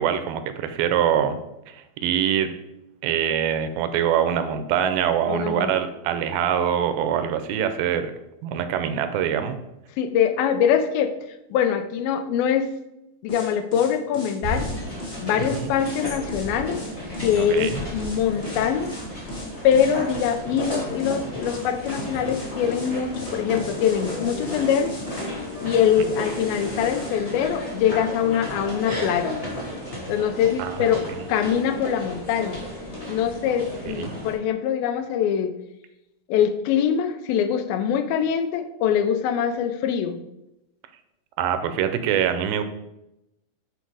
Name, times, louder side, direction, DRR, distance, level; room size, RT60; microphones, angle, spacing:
voice 1, 0.0-1.4 1.7-2.5 3.0-8.1 8.4-9.6 15.5-15.7 17.4-17.8 30.6-31.0 33.9-34.1 41.4-42.6, right 9 dB, 85° right, 9 dB, 2.6 m, -24 dB
voice 2, 5.3-5.7 10.0-11.1 11.5-12.7 13.2-14.7 15.2-16.8 17.2-18.9 19.6-25.0 25.6-29.3 30.1-31.0 31.3-32.6 33.1-35.5 36.3-40.2, left 8 dB, 85° left, 8 dB, 2.5 m, -23 dB
sound 1, 13.3-27.2, left 1 dB, 60° left, 0.6 m, -37 dB
sound 2, 14.4-34.3, left 1 dB, 15° left, 1.3 m, -33 dB
9.4 x 4.1 x 4.7 m, 0.89 s
omnidirectional pair, 4.2 m